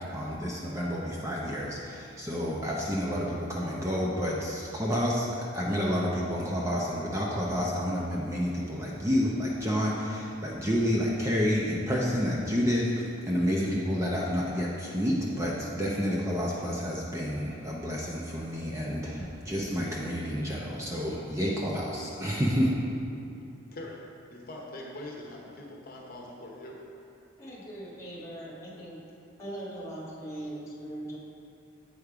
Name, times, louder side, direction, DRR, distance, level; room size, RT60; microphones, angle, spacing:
voice 1, 0.0-22.7, equal, 15° right, -4 dB, 0.6 m, -29 dB
voice 2, 23.7-24.0 24.3-26.8, left 1 dB, 45° left, -2 dB, 0.9 m, -42 dB
voice 3, 27.4-29.0 29.4-31.2, right 1 dB, 15° left, -6 dB, 1.5 m, -40 dB
8.0 x 5.2 x 4.8 m, 2.6 s
head